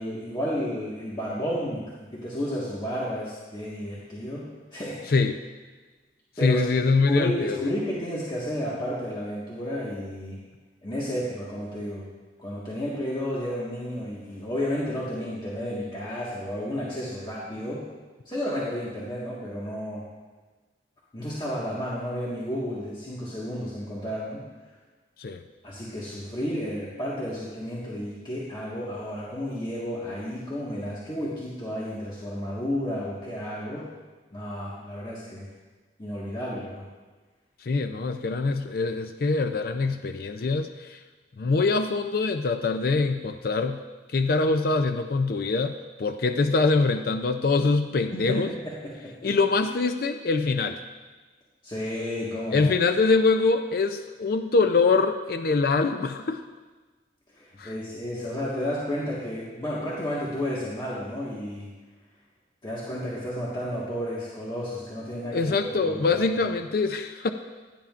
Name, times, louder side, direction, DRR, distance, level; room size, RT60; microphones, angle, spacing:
voice 1, 0.0-5.1 6.4-6.6 7.1-10.4 10.8-12.1 12.4-17.8 18.2-20.0 21.1-24.4 25.6-33.9 34.3-35.5 36.0-36.8 48.1-49.3 51.6-52.7 57.3-61.7 62.6-65.5 65.8-66.2, equal, 25° left, -7 dB, 1.6 m, -32 dB
voice 2, 6.4-7.7 25.2-25.4 37.6-41.0 41.4-43.8 44.1-48.5 49.2-50.8 52.5-56.4 57.6-57.7 65.3-67.3, left 3 dB, 55° left, 7 dB, 0.4 m, -24 dB
16.0 x 10.0 x 2.5 m, 1.3 s
head